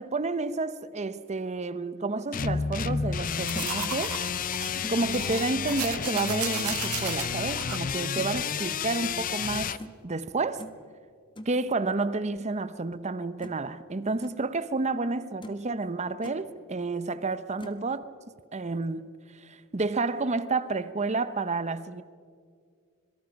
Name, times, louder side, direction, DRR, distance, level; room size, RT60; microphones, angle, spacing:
voice 1, 0.0-4.2 4.9-9.8 10.0-10.6 11.5-18.1 18.5-22.0, right 3 dB, 30° right, 0.7 m, -30 dB
sound 1, 2.1-2.5 3.0-3.1 3.5-3.8 4.8-5.0 6.1-6.4 8.1-8.3 9.0-9.2 9.8-10.0 10.6-10.8 11.4-11.6 12.9-13.0 13.4-13.7 14.0-14.4 14.9-15.0 15.4-15.7 16.0-16.4 17.6-17.8, equal, 20° left, 1.2 m, -44 dB
sound 2, 2.3-9.8, left 7 dB, 40° left, 0.5 m, -31 dB
sound 3, 3.5-7.8, right 10 dB, 80° right, 1.3 m, -36 dB
26.0 x 22.5 x 5.3 m
head